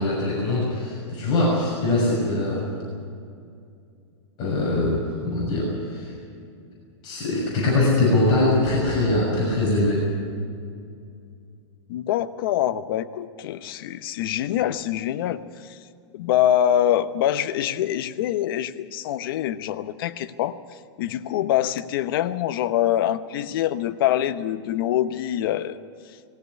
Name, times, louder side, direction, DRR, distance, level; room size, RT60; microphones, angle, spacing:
voice 1, 0.0-2.7 4.4-6.1 7.0-10.1, left 2 dB, 30° left, -5 dB, 6.6 m, -22 dB
voice 2, 11.9-15.8 16.1-20.6 21.0-25.8, left 11 dB, 50° left, 11 dB, 1.0 m, -24 dB
20.5 x 16.0 x 9.7 m, 2.4 s
supercardioid pair, 160°, 15 cm